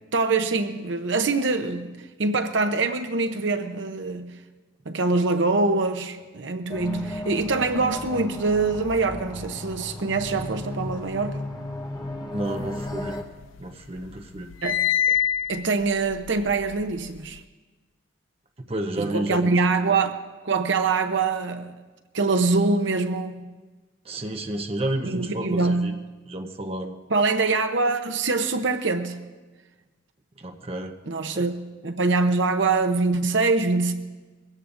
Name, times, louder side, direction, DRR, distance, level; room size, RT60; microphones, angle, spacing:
voice 1, 0.1-4.3 4.9-11.4 14.6-14.8 15.1-15.2 15.5-17.4 19.0-20.2 20.4-21.7 22.1-23.5 25.0-25.9 27.1-29.2 31.1-31.6 31.8-33.9, right 3 dB, 65° right, 7 dB, 0.7 m, -24 dB
sound 1, 6.7-13.2, left 1 dB, 20° left, 1.0 m, -35 dB
voice 2, 12.2-13.2 13.6-14.5 18.6-19.5 24.0-26.0 26.3-27.0 30.4-30.9 31.3-31.5, right 1 dB, 30° right, 4 dB, 0.7 m, -31 dB
sound 2, 12.6-13.7 14.0-17.4, left 10 dB, 75° left, 0.3 m, -27 dB
21.5 x 16.5 x 2.6 m, 1.3 s
head